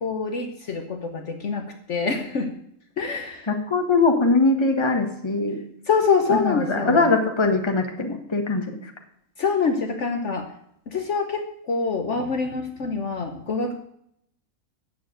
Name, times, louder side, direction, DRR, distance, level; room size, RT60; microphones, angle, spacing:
voice 1, 0.0-2.5 3.0-3.5 5.9-7.1 9.4-10.5 10.9-13.7, left 5 dB, 55° left, 5 dB, 1.2 m, -25 dB
voice 2, 3.5-5.6 6.3-8.9, left 3 dB, 20° left, 4 dB, 1.4 m, -21 dB
9.3 x 7.1 x 7.7 m, 0.73 s
omnidirectional pair, 1.5 m